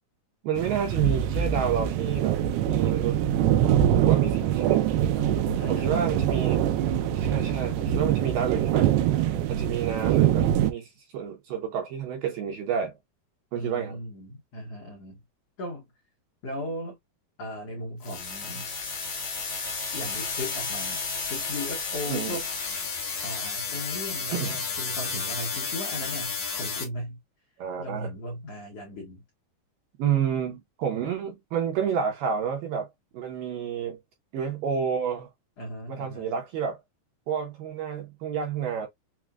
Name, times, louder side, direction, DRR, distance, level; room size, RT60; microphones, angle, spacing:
voice 1, 0.4-2.4 2.7-3.2 3.9-4.9 5.7-6.7 7.1-8.9 9.5-10.9 11.1-13.0 13.5-14.0 22.1-22.4 24.3-24.6 27.6-28.1 30.0-32.9 33.1-34.0 34.3-35.3 35.9-36.8 37.3-38.9, right 7 dB, 75° right, 2.3 m, -29 dB
sound 1, 0.6-10.7, right 11 dB, 90° right, 2.7 m, -24 dB
voice 2, 5.1-6.4 6.8-7.2 13.6-15.2 15.6-15.8 16.4-17.0 17.4-18.7 19.9-21.0 21.3-22.5 23.2-27.2 27.8-29.2 35.6-36.3, left 1 dB, 70° left, 1.5 m, -37 dB
sound 2, 18.0-26.8, left 4 dB, 45° left, 1.7 m, -32 dB
6.2 x 2.3 x 2.3 m
omnidirectional pair, 4.6 m